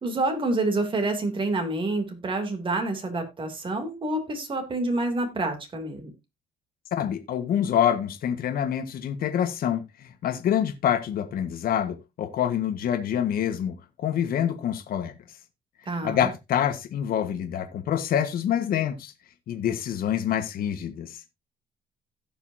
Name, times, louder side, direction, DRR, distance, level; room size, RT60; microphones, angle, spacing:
voice 1, 0.0-6.1 15.9-16.3, right 2 dB, 30° right, 3.0 m, -28 dB
voice 2, 6.9-13.7 14.0-15.1 16.0-19.1 19.5-21.2, left 9 dB, 60° left, 1.5 m, -26 dB
16.5 x 5.6 x 2.8 m
cardioid pair, 110°, 17 cm